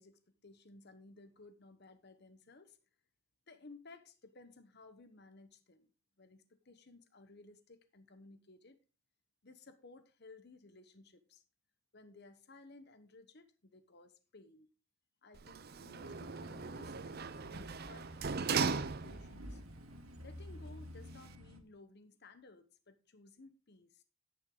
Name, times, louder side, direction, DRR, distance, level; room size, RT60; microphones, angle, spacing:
voice 1, 0.0-2.8 3.5-5.9 6.2-8.8 9.4-11.4 11.9-14.7 15.2-19.6 20.2-24.0, left 3 dB, 50° left, 1.1 m, -58 dB
Sliding door, 15.3-19.5 19.9-20.0, right 5 dB, 50° right, 0.6 m, -38 dB
sound 1, 16.0-21.6, equal, 85° right, 1.9 m, -51 dB
10.0 x 9.0 x 3.8 m
head